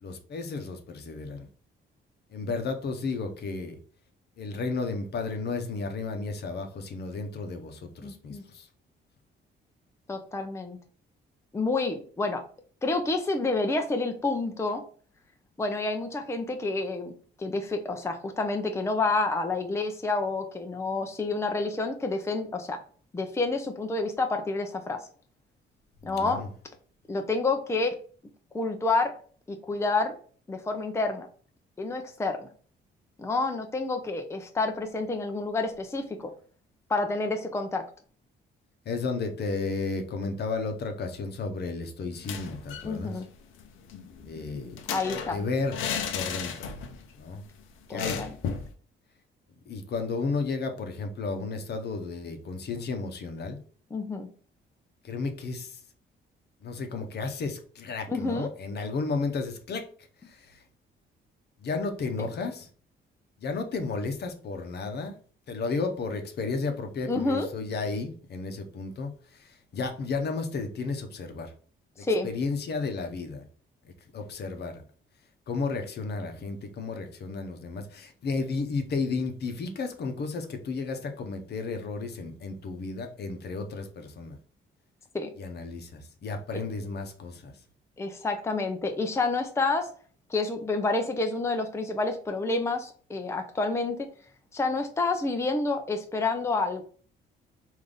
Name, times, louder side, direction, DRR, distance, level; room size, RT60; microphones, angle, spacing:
voice 1, 0.0-1.5 2.3-3.8 4.4-8.7 26.0-26.5 38.8-43.2 44.2-44.8 45.3-45.8 46.1-46.7 47.2-47.4 47.9-48.2 49.7-53.6 55.0-55.8 56.6-59.9 60.2-60.6 61.6-62.7 63.4-65.1 65.5-71.5 72.0-73.4 73.8-74.8 75.5-84.4 85.4-87.5, left 4 dB, 55° left, 5 dB, 0.8 m, -33 dB
voice 2, 8.0-8.4 10.1-10.8 11.5-12.4 12.8-14.8 15.6-17.1 17.4-22.8 23.1-25.0 26.0-26.4 27.1-27.9 28.5-29.1 29.5-30.2 30.5-31.3 31.8-32.5 33.2-36.3 36.9-37.8 42.8-43.2 44.9-45.4 47.9-48.3 53.9-54.3 58.1-58.5 67.1-67.5 72.0-72.3 85.1-85.3 86.5-86.6 88.0-89.9 90.3-94.1 94.5-96.8, left 3 dB, 15° left, 5 dB, 0.5 m, -29 dB
sound 1, 42.1-42.9 43.2-43.3 43.6-47.1 47.3-47.5 48.0-48.7, left 7 dB, 85° left, 0.6 m, -34 dB
3.4 x 2.7 x 3.8 m, 0.43 s
cardioid pair, 90°, 20 cm